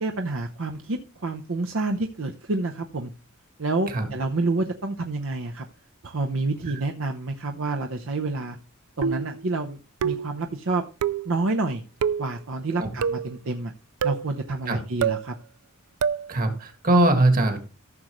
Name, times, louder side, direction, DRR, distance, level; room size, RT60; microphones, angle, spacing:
voice 1, 0.0-3.1 3.6-5.7 6.0-8.6 9.0-10.8 11.2-11.8 12.2-13.7 14.0-15.3, right 3 dB, 65° right, 4 dB, 0.8 m, -28 dB
sound 1, 9.0-9.4 10.0-10.4 11.0-11.3 12.0-12.3 13.0-13.3 14.0-14.3 15.0-15.3 16.0-16.3, right 7 dB, 80° right, 0.4 m, -26 dB
voice 2, 16.3-17.6, right 1 dB, 40° right, 6 dB, 1.8 m, -21 dB
14.5 x 6.5 x 3.1 m, 0.33 s
head